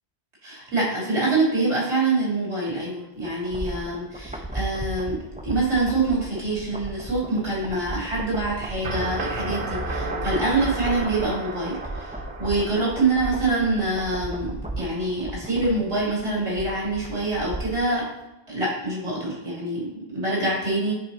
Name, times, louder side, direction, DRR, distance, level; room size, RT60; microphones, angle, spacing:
voice 1, 0.4-18.1 18.5-20.9, right 2 dB, 90° right, -5 dB, 3.4 m, -25 dB
sound 1, 3.2-17.9 18.2-18.3, right 2 dB, 10° right, 0.5 m, -35 dB
sound 2, 8.8-13.8, right 2 dB, 55° right, 1.0 m, -32 dB
9.0 x 3.9 x 4.3 m, 1.0 s
omnidirectional pair, 1.1 m